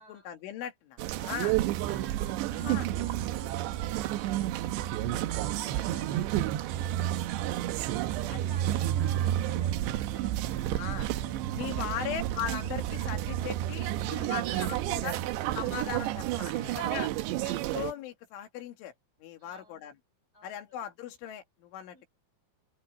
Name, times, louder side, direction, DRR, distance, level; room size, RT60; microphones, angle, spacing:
voice 1, 0.0-1.0 1.3-1.5 2.5-2.9 8.3-8.4 10.8-11.1 11.5-15.2 15.6-17.1 17.4-18.9 19.2-20.0 20.4-22.1, left 10 dB, 90° left, 4.7 m, -39 dB
sound 1, 1.0-17.9, right 13 dB, 75° right, 3.0 m, -31 dB
voice 2, 1.1-1.5 1.9-12.0 14.2-15.5 16.5-17.8 19.4-19.9 20.3-20.7 21.9-22.1, left 1 dB, 20° left, 7.3 m, -54 dB
omnidirectional pair, 5.4 m